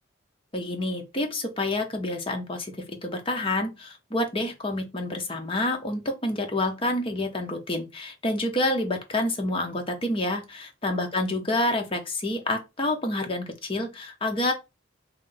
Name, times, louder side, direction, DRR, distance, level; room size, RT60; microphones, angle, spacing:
voice 1, 0.5-14.5, left 1 dB, 25° left, 0.7 m, -28 dB
3.1 x 2.6 x 3.8 m
head